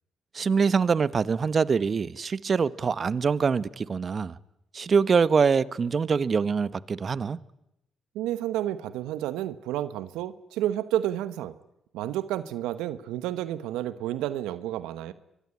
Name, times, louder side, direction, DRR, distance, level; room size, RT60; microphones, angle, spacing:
voice 1, 0.3-4.3 4.7-7.4, right 5 dB, 45° right, 1.1 m, -24 dB
voice 2, 8.1-11.5 11.9-15.1, right 13 dB, 85° right, 1.0 m, -30 dB
24.0 x 23.0 x 9.9 m
supercardioid pair, 55°, 0 cm